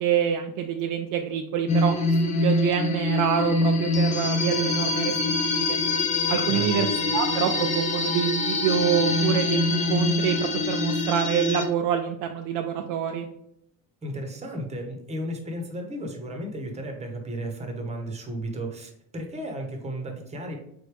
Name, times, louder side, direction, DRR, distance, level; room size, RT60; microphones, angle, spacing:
voice 1, 0.0-1.9 2.2-5.1 5.5-5.8 6.3-6.9 7.1-13.3, right 9 dB, 50° right, 4 dB, 0.5 m, -26 dB
sound 1, 1.7-11.7, left 2 dB, 20° left, 0.4 m, -24 dB
voice 2, 6.4-7.0 14.0-20.6, right 1 dB, 15° right, 3 dB, 0.9 m, -34 dB
3.9 x 3.2 x 3.3 m, 0.73 s
supercardioid pair, 105°, 42 cm